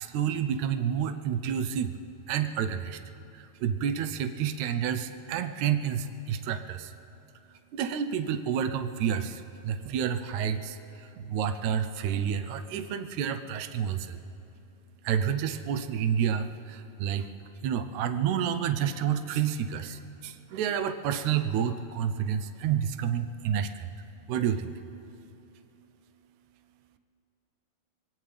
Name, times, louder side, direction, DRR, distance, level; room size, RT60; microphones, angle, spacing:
voice 1, 0.0-2.0 2.3-3.0 3.3-6.9 7.7-14.2 15.0-17.3 17.6-23.9 24.3-24.7, right 8 dB, 75° right, 9 dB, 1.8 m, -29 dB
23.0 x 18.5 x 3.4 m, 2.9 s
omnidirectional pair, 3.9 m